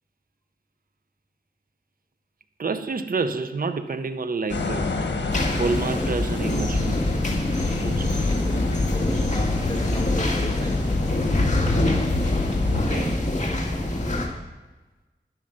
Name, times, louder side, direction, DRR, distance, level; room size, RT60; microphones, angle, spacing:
voice 1, 2.6-5.1 5.6-7.1 7.8-8.1 12.6-13.2, right 4 dB, 50° right, 0.7 m, -29 dB
sound 1, 4.5-12.9, left 3 dB, 80° left, 1.4 m, -27 dB
sound 2, 5.3-14.3, left 1 dB, 40° left, 2.0 m, -26 dB
voice 2, 7.7-11.0, left 1 dB, 20° left, 1.9 m, -37 dB
11.0 x 8.8 x 6.5 m
wide cardioid pair, 75°, 18 cm